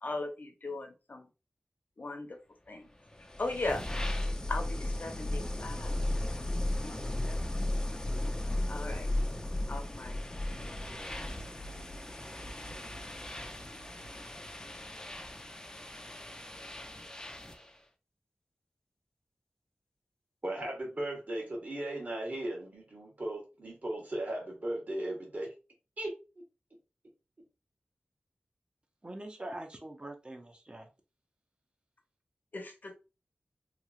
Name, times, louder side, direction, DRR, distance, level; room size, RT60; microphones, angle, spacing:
voice 1, 0.0-1.3 2.0-2.4 2.7-2.9 3.4-3.8 4.5-6.0 6.8-7.7 8.7-9.1 9.7-10.2 32.5-33.0, left 2 dB, 55° left, 0.7 m, -38 dB
sound 1, 3.1-17.7, left 1 dB, 20° left, 0.4 m, -36 dB
voice 2, 20.4-25.5 26.0-26.1, right 1 dB, 45° right, 1.3 m, -37 dB
voice 3, 29.0-30.9, right 1 dB, 25° right, 0.6 m, -43 dB
3.0 x 2.3 x 2.3 m
wide cardioid pair, 65°, 4 cm